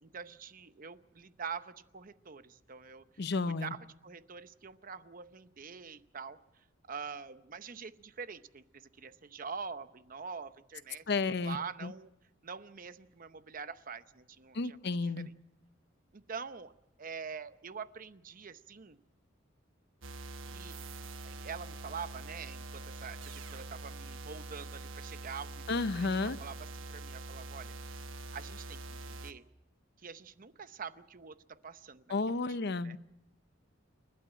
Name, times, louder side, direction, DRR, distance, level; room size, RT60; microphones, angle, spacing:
voice 1, 0.0-3.0 3.5-6.4 6.9-12.1 12.4-15.3 16.1-16.7 17.0-19.0 20.5-20.9 21.2-27.7 28.3-29.4 30.0-32.1 32.8-33.0, right 6 dB, 45° right, 12 dB, 0.8 m, -45 dB
voice 2, 3.2-3.7 11.1-11.9 14.5-15.3 25.7-26.4 32.1-33.0, left 3 dB, 60° left, 14 dB, 0.7 m, -32 dB
sound 1, 20.0-29.3, right 3 dB, 85° right, 1.1 m, -44 dB
29.5 x 12.0 x 9.0 m, 0.91 s
head